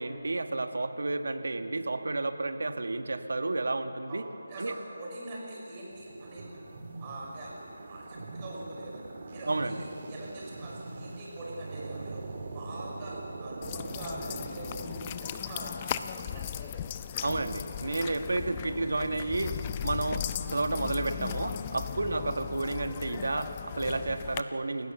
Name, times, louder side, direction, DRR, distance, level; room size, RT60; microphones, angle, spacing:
voice 1, 0.0-4.2 4.6-4.8 9.5-9.8 17.2-19.5 19.8-24.9, right 2 dB, 75° right, 7 dB, 1.8 m, -31 dB
voice 2, 4.1-6.4 7.0-9.0 9.3-12.2 12.5-14.7 15.2-16.9 18.6-18.9 19.2-19.4 22.1-22.2, right 2 dB, 25° right, -4 dB, 6.3 m, -43 dB
sound 1, 5.9-15.1, right 3 dB, 40° right, 2.9 m, -42 dB
sound 2, 13.6-24.4, left 10 dB, 20° left, 0.6 m, -37 dB
29.0 x 17.0 x 7.0 m, 2.8 s
figure-of-eight pair, 165°, 0 cm